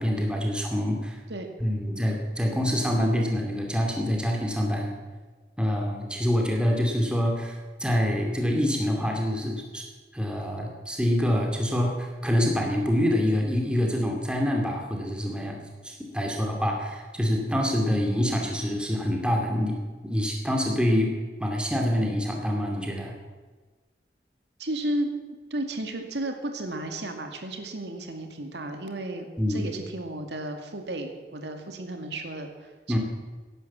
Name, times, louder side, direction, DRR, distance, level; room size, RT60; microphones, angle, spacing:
voice 1, 0.0-1.2 1.6-4.9 5.6-9.8 10.1-15.6 15.8-19.8 20.0-23.1 29.4-29.6 32.9-33.0, equal, 5° right, 0 dB, 2.7 m, -26 dB
voice 2, 24.6-25.1 25.5-33.0, right 1 dB, 80° right, 5 dB, 2.2 m, -33 dB
17.0 x 11.0 x 7.4 m, 1.3 s
head